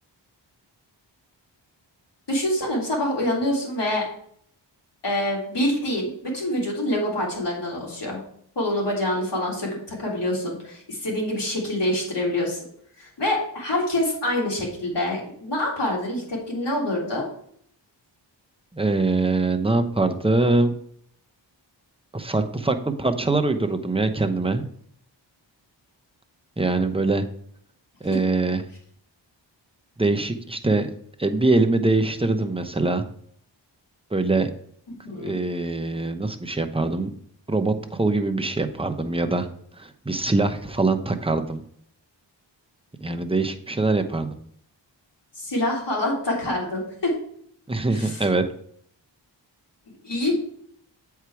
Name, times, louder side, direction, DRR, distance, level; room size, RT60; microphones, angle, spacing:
voice 1, 2.3-4.0 5.0-8.2 8.6-12.6 13.0-17.3 34.9-35.4 45.4-47.1 47.9-48.2 50.0-50.4, left 1 dB, 60° left, -3 dB, 3.6 m, -26 dB
voice 2, 18.7-20.7 22.1-24.6 26.6-27.3 28.0-28.6 30.0-30.9 31.2-33.0 34.1-34.5 35.1-37.1 37.5-39.5 39.8-41.6 43.0-44.4 47.7-48.4, right 2 dB, 10° right, 6 dB, 0.9 m, -23 dB
8.1 x 4.7 x 4.7 m, 0.64 s
cardioid pair, 45°, 46 cm